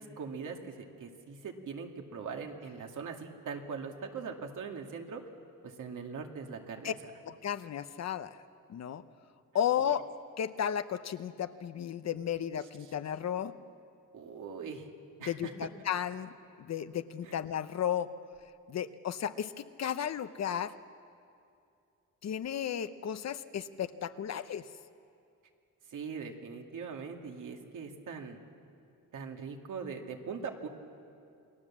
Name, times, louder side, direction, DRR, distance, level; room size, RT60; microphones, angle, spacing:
voice 1, 0.0-5.2 5.6-6.9 14.1-14.9 15.2-15.5 17.2-17.3 25.9-28.4 29.1-30.7, right 5 dB, 65° right, 3 dB, 2.3 m, -41 dB
voice 2, 7.2-8.4 8.7-9.0 9.5-10.1 10.4-13.5 15.3-16.3 16.6-18.1 18.7-20.7 22.2-24.7, left 9 dB, 55° left, 12 dB, 0.8 m, -34 dB
28.5 x 20.5 x 7.4 m, 2.5 s
wide cardioid pair, 155°, 33 cm